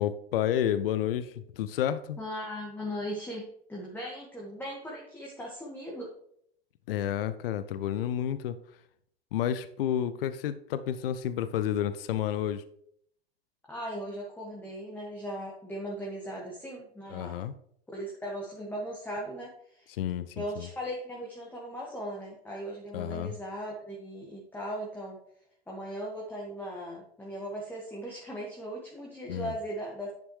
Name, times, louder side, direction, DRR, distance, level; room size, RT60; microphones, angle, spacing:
voice 1, 0.0-2.2 6.9-8.6 9.3-12.6 17.1-17.5 19.9-20.7 22.9-23.3 29.3-29.5, left 10 dB, 65° left, 13 dB, 0.6 m, -30 dB
voice 2, 2.2-6.1 13.7-17.4 17.9-19.9 20.3-25.2 25.7-30.1, equal, 5° left, -3 dB, 1.7 m, -38 dB
10.0 x 6.1 x 3.2 m, 0.70 s
figure-of-eight pair, 90°, 31 cm